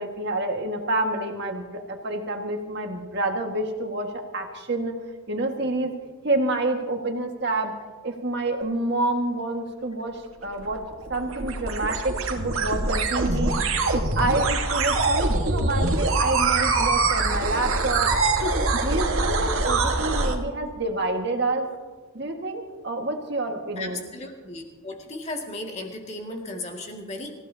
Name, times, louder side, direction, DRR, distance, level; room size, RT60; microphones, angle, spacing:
voice 1, 0.0-4.9 5.3-5.9 6.2-7.7 8.0-10.8 11.1-13.5 13.9-18.1 18.4-21.7 22.1-24.0, right 2 dB, 50° right, 3 dB, 1.8 m, -28 dB
sound 1, 10.5-20.4, right 3 dB, 80° right, 1.7 m, -24 dB
voice 2, 23.8-27.3, left 2 dB, 30° left, 1 dB, 2.2 m, -35 dB
26.0 x 15.5 x 2.9 m, 1.3 s
head